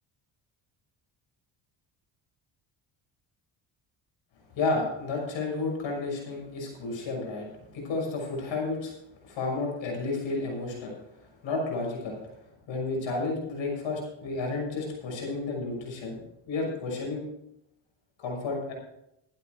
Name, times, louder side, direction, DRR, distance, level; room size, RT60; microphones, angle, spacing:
voice 1, 4.5-7.5 7.7-8.9 9.2-10.9 11.4-12.2 12.7-16.2 16.5-17.3 18.2-18.7, left 3 dB, 70° left, -1 dB, 6.2 m, -31 dB
13.5 x 12.0 x 4.7 m, 0.81 s
cardioid pair, 85°, 47 cm